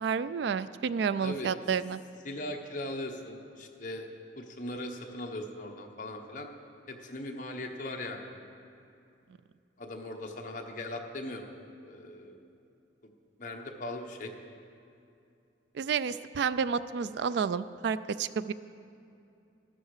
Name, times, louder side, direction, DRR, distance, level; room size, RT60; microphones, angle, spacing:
voice 1, 0.0-2.0 15.7-18.5, right 6 dB, 65° right, 15 dB, 0.3 m, -30 dB
voice 2, 2.2-4.1 4.4-6.5 6.9-8.3 9.8-11.4 11.8-12.4 13.4-14.3, left 1 dB, 40° left, 2 dB, 1.1 m, -39 dB
13.5 x 13.0 x 4.9 m, 2.6 s
head